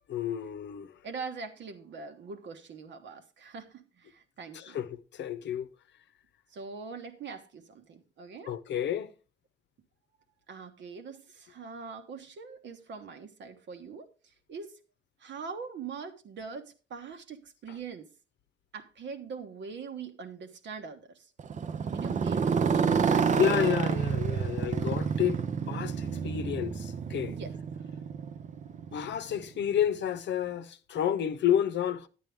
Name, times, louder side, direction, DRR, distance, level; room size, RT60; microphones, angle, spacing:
voice 1, 0.1-0.9 4.5-5.7 8.5-9.1 23.3-25.4 25.7-27.3 28.9-32.1, left 10 dB, 65° left, 0.8 m, -30 dB
voice 2, 1.0-4.8 6.5-8.5 10.5-14.8 15.2-18.1 18.7-21.3 21.9-24.5 27.3-27.5, right 5 dB, 65° right, 1.3 m, -43 dB
Motorcycle, 21.4-29.4, right 6 dB, 40° right, 0.6 m, -29 dB
9.8 x 9.1 x 3.5 m
cardioid pair, 90°, 20 cm